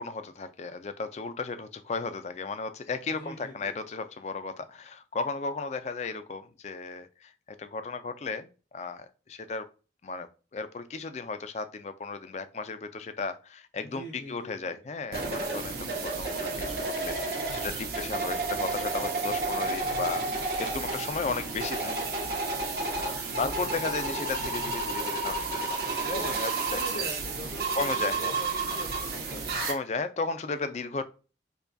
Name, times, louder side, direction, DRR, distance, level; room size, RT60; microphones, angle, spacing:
voice 1, 0.0-9.7 10.0-21.9 23.0-27.0 27.7-28.4 29.7-31.0, left 4 dB, 40° left, 10 dB, 0.4 m, -35 dB
voice 2, 3.1-3.8 13.8-14.8 23.4-24.1 26.1-29.7 30.5-31.0, left 1 dB, 70° left, 0 dB, 0.8 m, -43 dB
sound 1, 15.1-29.7, right 3 dB, 60° right, 1.1 m, -31 dB
6.8 x 2.3 x 2.6 m, 0.35 s
head